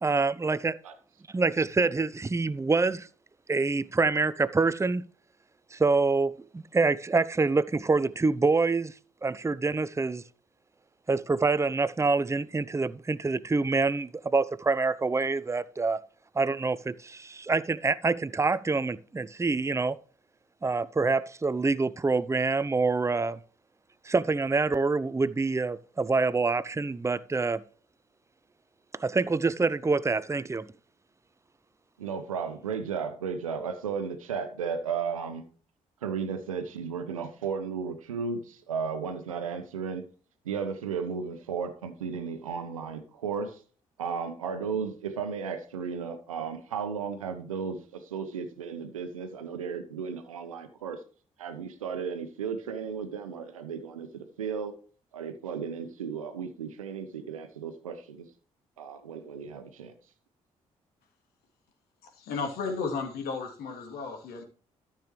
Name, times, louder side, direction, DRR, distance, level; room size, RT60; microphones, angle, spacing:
voice 1, 0.0-0.8 1.3-3.1 3.5-5.0 5.7-8.9 9.2-10.2 11.1-16.0 16.4-19.9 20.6-23.4 24.0-27.6 29.0-30.7, right 3 dB, 15° right, 0.7 m, -26 dB
voice 2, 32.0-35.4 36.0-40.1 40.4-43.6 44.0-51.0 51.4-54.7 55.1-58.2 58.8-59.9, right 6 dB, 85° right, 1.0 m, -34 dB
voice 3, 62.2-64.4, left 4 dB, 65° left, 2.8 m, -33 dB
13.5 x 7.0 x 3.2 m
figure-of-eight pair, 40°, 17 cm